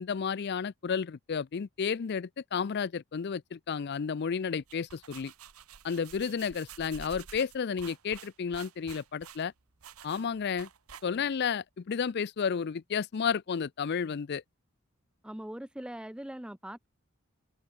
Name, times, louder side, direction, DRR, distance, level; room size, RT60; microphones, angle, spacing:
voice 1, 0.0-5.3 5.8-9.5 10.0-10.7 11.0-14.4, left 6 dB, 50° left, 0.4 m, -32 dB
sound 1, 4.5-11.4, right 7 dB, 85° right, 1.3 m, -50 dB
voice 2, 15.2-16.9, right 1 dB, 5° right, 0.5 m, -41 dB
head